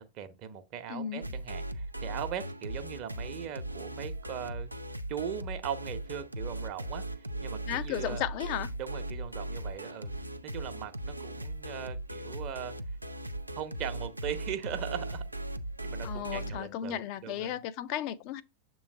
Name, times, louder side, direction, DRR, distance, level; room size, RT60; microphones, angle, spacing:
voice 1, 0.0-4.7 5.1-7.0 7.4-8.2 8.8-10.1 10.4-12.7 13.6-15.2 15.8-17.6, right 9 dB, 40° right, 0.8 m, -39 dB
voice 2, 0.9-1.2 7.7-8.7 16.0-18.4, left 11 dB, 45° left, 0.4 m, -34 dB
sound 1, 1.2-16.6, right 1 dB, 85° right, 0.4 m, -38 dB
7.0 x 3.1 x 5.2 m
figure-of-eight pair, 90°, 0 cm